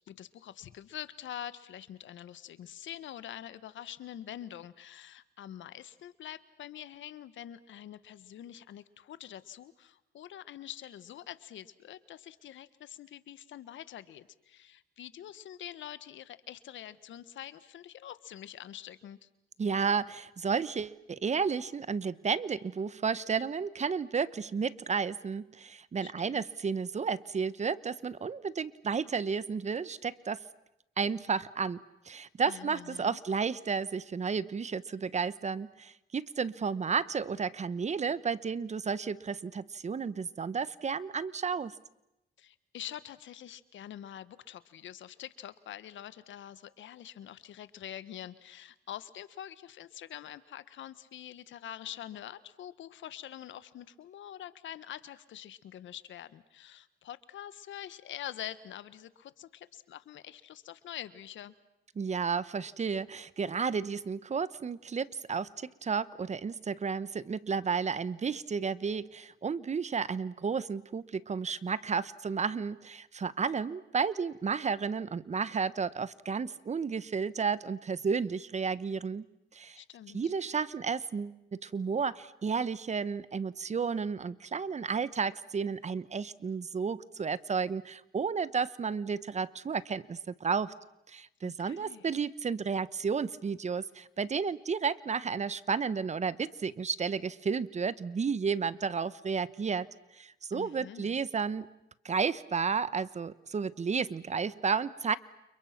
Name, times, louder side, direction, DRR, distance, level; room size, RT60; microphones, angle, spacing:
voice 1, 0.1-19.3 26.0-26.5 32.5-33.2 42.4-61.5 79.7-80.2 91.4-92.1 100.5-101.2, left 11 dB, 70° left, 15 dB, 1.5 m, -45 dB
voice 2, 19.6-30.4 31.0-31.8 32.1-41.7 62.0-79.2 79.5-79.8 80.1-90.7 91.1-99.9 100.1-101.7 102.0-105.2, right 5 dB, 35° right, 17 dB, 1.1 m, -32 dB
30.0 x 29.5 x 6.0 m, 0.88 s
cardioid pair, 90°, 20 cm